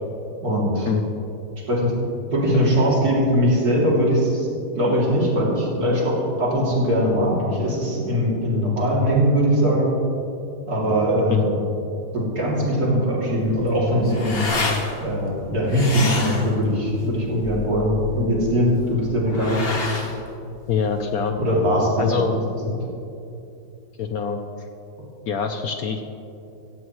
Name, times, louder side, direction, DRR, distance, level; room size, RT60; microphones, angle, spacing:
voice 1, 0.4-0.9 1.7-1.9 2.3-4.5 4.7-9.9 10.7-11.6 12.1-14.5 15.0-19.6 21.4-22.3, equal, 55° right, -5 dB, 3.3 m, -21 dB
sound 1, 13.4-21.3, left 3 dB, 35° left, 1.4 m, -30 dB
voice 2, 20.7-21.4 22.0-22.3 24.0-24.4 25.3-26.0, left 6 dB, 65° left, 6 dB, 1.0 m, -24 dB
16.0 x 15.0 x 3.1 m, 2.8 s
omnidirectional pair, 1.9 m